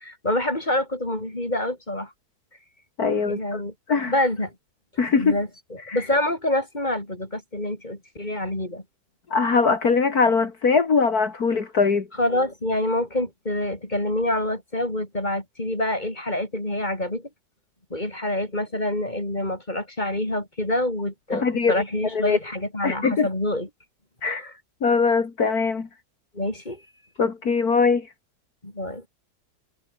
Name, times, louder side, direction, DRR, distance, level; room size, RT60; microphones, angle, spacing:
voice 1, 0.0-2.1 3.2-3.7 4.1-4.5 5.2-8.8 12.2-17.3 17.9-23.7 24.2-24.5 26.3-26.8 28.6-29.0, left 1 dB, 25° left, 4.9 m, -27 dB
voice 2, 3.0-3.6 3.9-4.1 5.0-5.4 5.9-6.0 9.3-12.1 21.3-21.7 22.1-22.4 22.8-23.3 24.2-24.5 24.8-25.9 27.2-28.1, left 5 dB, 65° left, 2.8 m, -21 dB
omnidirectional pair, 1.8 m